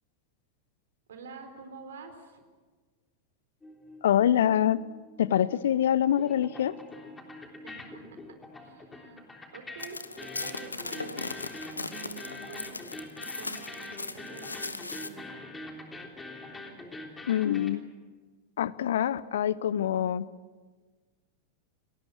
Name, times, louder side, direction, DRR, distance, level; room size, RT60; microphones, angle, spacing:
voice 1, 1.1-2.4 7.6-11.3 11.7-15.5, right 4 dB, 65° right, 7 dB, 4.1 m, -48 dB
sound 1, 3.6-5.8 6.1-17.7, left 2 dB, 10° left, 3.5 m, -44 dB
voice 2, 4.0-4.8 5.2-6.7 17.3-17.8 18.6-20.3, left 10 dB, 60° left, 20 dB, 0.7 m, -25 dB
sound 2, 9.8-15.1, left 3 dB, 80° left, 1.2 m, -38 dB
29.0 x 20.0 x 6.6 m, 1.4 s
figure-of-eight pair, 90°, 0 cm